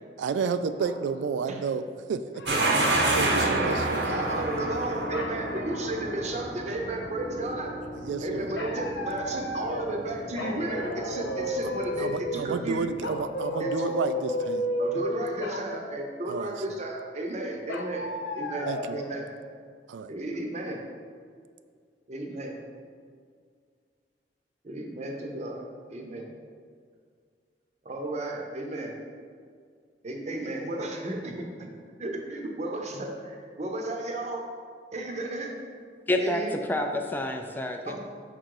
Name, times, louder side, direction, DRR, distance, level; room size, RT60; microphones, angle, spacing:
voice 1, 0.2-2.4 3.1-4.0 8.0-8.5 12.0-14.7 16.3-16.5 18.7-19.0 19.9-20.1, right 5 dB, 85° right, 11 dB, 0.3 m, -31 dB
sound 1, 0.8-1.1 2.3-3.3 5.1-6.0 8.6-10.0 10.4-12.4 13.0-15.1 15.4-15.7 17.7-19.1, left 1 dB, 85° left, 0.6 m, -33 dB
sound 2, 2.5-13.2, right 2 dB, 70° right, 0.8 m, -30 dB
voice 2, 3.6-7.7 8.2-12.8 13.6-13.8 14.8-18.1 18.3-19.3 20.1-20.8 22.1-22.6 24.6-25.6 25.9-26.3 27.8-28.9 30.0-31.7 32.0-34.5 34.9-35.6 36.2-36.5 37.9-38.0, right 2 dB, 40° right, 2 dB, 0.7 m, -33 dB
voice 3, 36.1-38.0, left 1 dB, 10° left, 4 dB, 0.3 m, -28 dB
5.3 x 3.8 x 4.7 m, 2.1 s
head